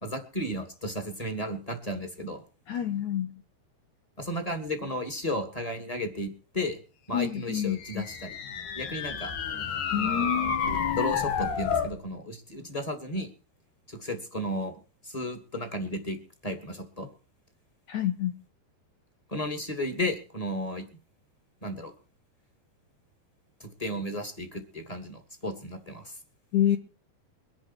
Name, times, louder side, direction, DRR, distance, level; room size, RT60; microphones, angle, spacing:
voice 1, 0.0-2.4 4.2-6.8 7.1-8.4 8.7-9.3 10.0-10.5 10.9-13.3 13.9-14.7 15.0-17.1 19.3-20.9 21.6-21.9 23.6-26.1, left 1 dB, 10° left, 6 dB, 1.7 m, -34 dB
voice 2, 2.7-3.3 7.1-8.0 9.9-11.1 17.9-18.4 26.5-26.8, left 10 dB, 75° left, 8 dB, 1.8 m, -28 dB
sound 1, 7.6-12.0, left 6 dB, 60° left, 2.9 m, -30 dB
23.0 x 10.5 x 4.6 m, 0.36 s
omnidirectional pair, 4.8 m